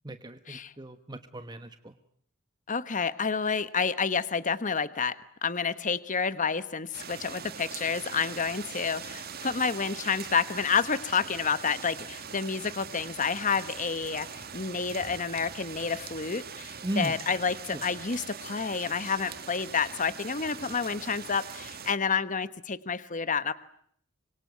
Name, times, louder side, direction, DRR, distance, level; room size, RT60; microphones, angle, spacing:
voice 1, 0.0-1.9 16.8-17.1 17.7-17.8, right 1 dB, 20° right, 9 dB, 1.2 m, -36 dB
voice 2, 2.7-5.1 5.4-23.5, left 5 dB, 40° left, 13 dB, 1.2 m, -29 dB
sound 1, 6.9-21.9, right 7 dB, 50° right, 1.8 m, -42 dB
26.0 x 23.5 x 9.4 m, 0.65 s
head